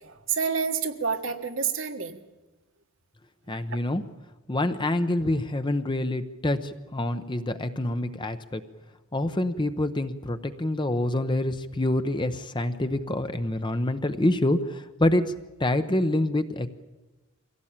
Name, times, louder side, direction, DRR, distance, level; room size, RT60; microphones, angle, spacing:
voice 1, 0.0-2.2 3.5-3.6, right 6 dB, 60° right, 5 dB, 1.6 m, -29 dB
voice 2, 3.5-4.0 4.5-8.6 9.1-15.2 15.6-16.7, left 1 dB, 20° left, 9 dB, 0.8 m, -26 dB
23.5 x 16.5 x 8.8 m, 1.1 s
head